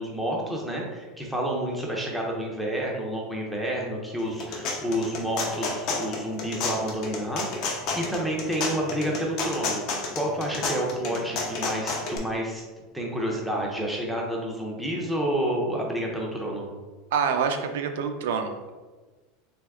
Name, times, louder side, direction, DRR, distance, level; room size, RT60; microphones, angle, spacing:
voice 1, 0.0-12.6 12.9-16.7, right 1 dB, ahead, -3 dB, 0.5 m, -29 dB
sound 1, 4.2-12.2, left 3 dB, 40° left, 0.6 m, -30 dB
voice 2, 17.1-18.7, right 6 dB, 85° right, 6 dB, 0.4 m, -26 dB
3.5 x 2.9 x 3.4 m, 1.3 s
supercardioid pair, 175°, 0 cm